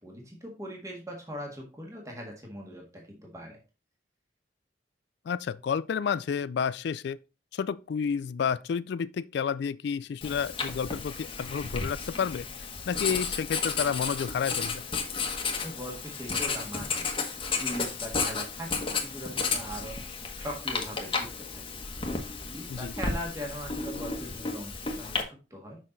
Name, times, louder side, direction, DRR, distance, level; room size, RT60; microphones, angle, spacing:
voice 1, 0.0-3.6 15.6-17.1 17.6-20.0 20.3-21.8 22.4-25.8, equal, 15° right, 1.6 m, -40 dB
voice 2, 5.3-7.2 7.5-12.4 12.9-14.8 22.7-22.9, left 7 dB, 60° left, 0.3 m, -30 dB
Writing, 10.2-25.2, left 4 dB, 30° left, 1.2 m, -33 dB
6.5 x 5.8 x 3.9 m
head